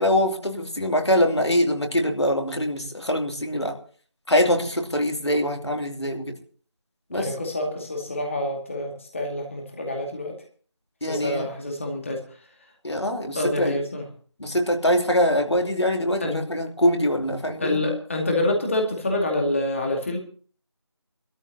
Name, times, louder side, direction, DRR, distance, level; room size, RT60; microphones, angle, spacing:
voice 1, 0.0-3.7 4.3-6.3 7.1-7.3 11.0-11.5 12.8-13.8 14.4-17.8, equal, 75° left, 4 dB, 3.0 m, -23 dB
voice 2, 7.1-10.4 11.0-12.2 13.3-14.1 16.2-16.4 17.6-20.2, left 1 dB, 30° left, 2 dB, 2.3 m, -27 dB
22.5 x 13.5 x 2.9 m, 0.42 s
figure-of-eight pair, 170°, 14 cm